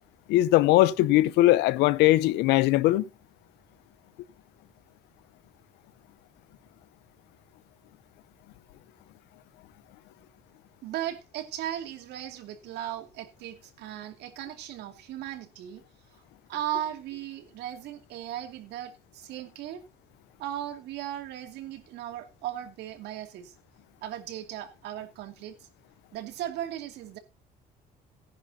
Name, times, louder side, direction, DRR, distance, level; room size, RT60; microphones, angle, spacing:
voice 1, 0.3-3.1, left 16 dB, 90° left, 0.7 m, -20 dB
voice 2, 10.8-15.8 16.5-19.8 20.4-23.5 24.0-25.6 26.1-27.2, right 12 dB, 80° right, 2.6 m, -37 dB
17.5 x 10.5 x 2.8 m
cardioid pair, 110°, 17 cm